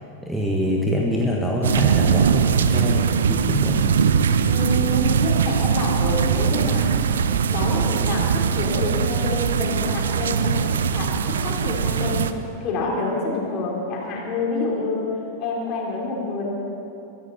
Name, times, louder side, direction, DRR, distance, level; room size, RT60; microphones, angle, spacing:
voice 1, 0.2-3.8, left 1 dB, 5° right, -2 dB, 1.6 m, -25 dB
sound 1, 1.6-12.3, right 7 dB, 65° right, 0.6 m, -21 dB
voice 2, 4.5-6.9 7.5-11.1 11.4-12.2 12.6-15.1 15.4-16.4, left 2 dB, 40° left, -3 dB, 4.3 m, -27 dB
23.0 x 14.0 x 4.4 m, 2.8 s
figure-of-eight pair, 90°, 0 cm